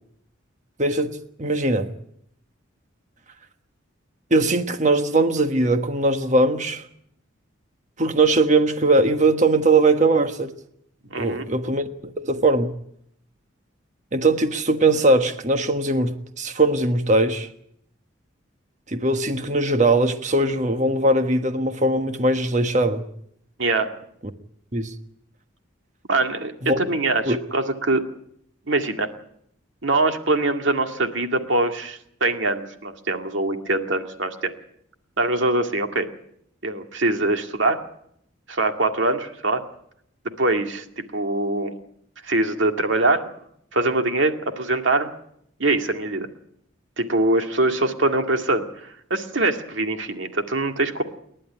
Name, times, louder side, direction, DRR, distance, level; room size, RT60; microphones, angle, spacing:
voice 1, 0.8-1.9 4.3-6.8 8.0-10.5 11.2-11.9 12.2-12.7 14.1-17.5 18.9-23.0 24.7-24.9 26.6-26.8 27.3-27.4, right 2 dB, 35° right, 1.4 m, -20 dB
voice 2, 11.0-11.5 23.6-23.9 26.1-28.1 28.7-29.1 29.8-34.5 35.2-36.1 36.6-37.8 38.5-39.6 40.4-40.8 41.1-41.7 42.2-43.2 43.7-45.1 45.6-46.3 47.0-51.0, right 2 dB, 65° right, 2.1 m, -23 dB
29.0 x 11.5 x 9.9 m
head